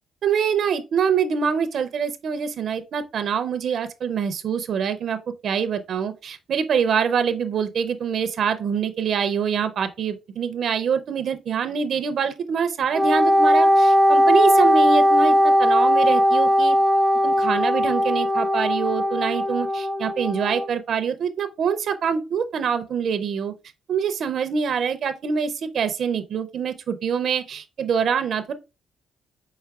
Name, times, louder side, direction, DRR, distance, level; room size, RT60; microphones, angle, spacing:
voice 1, 0.2-5.2 5.4-16.8 17.2-23.5 23.9-28.5, right 7 dB, 60° right, 0.4 m, -25 dB
Wind instrument woodwind instrument, 12.9-20.7, equal, ahead, 0.4 m, -18 dB
5.6 x 3.1 x 2.3 m
cardioid pair, 90°, 0 cm